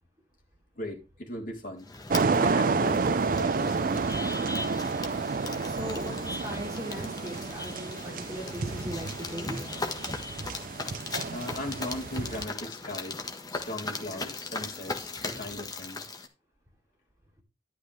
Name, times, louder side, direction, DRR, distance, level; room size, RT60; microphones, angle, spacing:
voice 1, 0.8-1.9 2.4-4.4 11.3-16.0, left 1 dB, 45° left, 3.4 m, -38 dB
sound 1, 1.8-16.3, left 3 dB, 20° left, 1.4 m, -38 dB
sound 2, 2.1-12.5, right 4 dB, 50° right, 0.5 m, -30 dB
voice 2, 5.6-9.6, equal, 20° right, 3.2 m, -39 dB
12.0 x 8.3 x 3.4 m
head